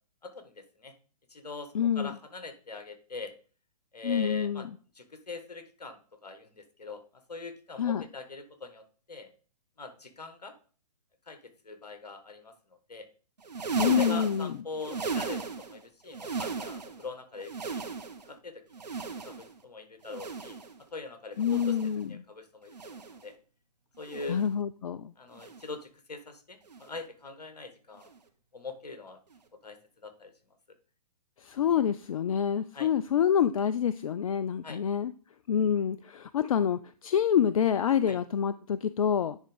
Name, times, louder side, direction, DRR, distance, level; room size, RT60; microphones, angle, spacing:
voice 1, 0.2-0.9 1.3-3.3 3.9-4.7 4.9-6.0 6.2-7.0 7.3-9.3 9.8-10.5 11.3-11.4 11.6-12.5 12.9-13.1 13.9-17.9 18.3-18.6 19.2-20.6 20.9-23.3 24.0-24.4 25.2-28.1 28.5-29.2 29.6-30.3 32.7-32.9 34.6-34.8 38.1-38.2, left 3 dB, 75° left, 9 dB, 1.5 m, -42 dB
voice 2, 1.7-2.1 4.0-4.7 7.8-8.0 13.8-14.6 21.4-22.1 24.3-25.1 31.4-35.1 35.5-39.4, left 8 dB, 55° left, 14 dB, 0.4 m, -27 dB
sound 1, 13.4-15.8 16.1-17.0 17.4-18.3 18.7-19.6 20.0-20.8 21.3-22.0 22.7-23.2 24.0-24.5 25.3-25.8 26.7-27.0 28.0-28.2 29.3-29.4, right 4 dB, 80° right, 1.1 m, -36 dB
10.0 x 3.6 x 5.0 m, 0.40 s
figure-of-eight pair, 120°, 21 cm